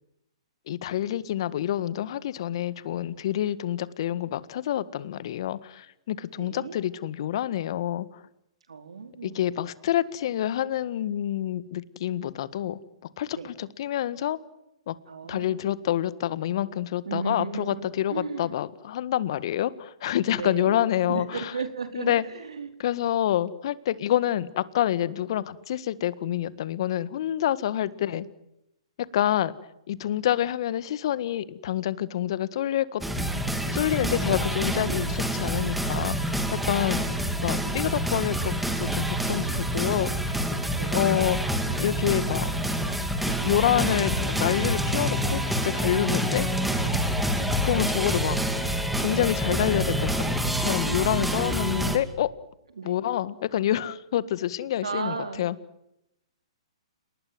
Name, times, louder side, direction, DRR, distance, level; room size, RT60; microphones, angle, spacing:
voice 1, 0.7-8.2 9.2-12.8 13.2-14.4 14.9-15.0 15.3-21.5 21.9-22.2 22.8-28.3 29.1-29.5 29.9-33.0 33.7-37.1 37.4-40.1 40.9-41.4 41.8-42.5 43.2-46.5 47.6-48.4 49.0-50.3 50.6-52.3 52.8-55.5, left 12 dB, 55° left, 16 dB, 1.7 m, -27 dB
voice 2, 6.3-6.8 8.7-9.6 13.3-13.5 15.1-15.7 17.0-18.5 20.3-20.8 21.1-22.7 40.8-41.0 52.8-53.0 54.8-55.5, right 5 dB, 80° right, 7 dB, 4.5 m, -35 dB
sound 1, 33.0-52.0, equal, 5° right, 3.2 m, -27 dB
30.0 x 20.0 x 7.9 m, 0.86 s
hypercardioid pair, 130°, 3 cm